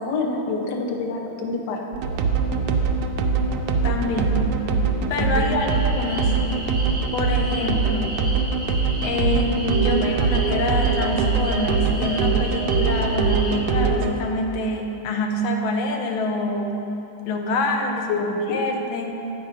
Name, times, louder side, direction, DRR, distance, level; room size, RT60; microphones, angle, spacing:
voice 1, 0.0-1.8 5.2-5.4 18.1-18.6, left 3 dB, 65° left, 1 dB, 1.3 m, -26 dB
sound 1, 1.9-14.1, right 5 dB, 75° right, 1.0 m, -22 dB
voice 2, 3.8-4.5 5.1-6.4 7.1-8.1 9.0-16.8 17.3-19.2, left 2 dB, 85° left, 2 dB, 1.6 m, -26 dB
sound 2, 5.6-13.6, equal, 5° left, 1.4 m, -34 dB
8.8 x 5.5 x 4.9 m, 3.0 s
omnidirectional pair, 2.1 m